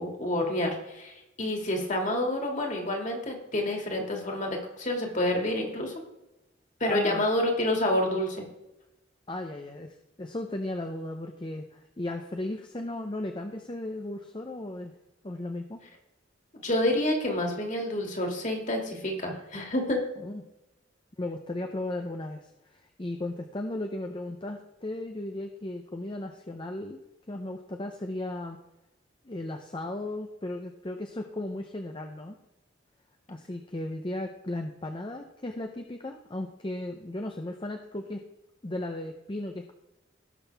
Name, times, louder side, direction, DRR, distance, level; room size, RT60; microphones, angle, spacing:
voice 1, 0.0-5.9 6.8-8.4 16.6-20.0, left 1 dB, 40° left, 1 dB, 2.4 m, -28 dB
voice 2, 6.9-7.2 9.3-14.9 15.2-15.8 20.2-20.4 21.2-27.0 27.3-28.6 29.2-32.4 33.3-38.2 38.6-39.7, left 1 dB, 25° left, 4 dB, 0.7 m, -36 dB
18.0 x 6.1 x 3.5 m, 0.93 s
head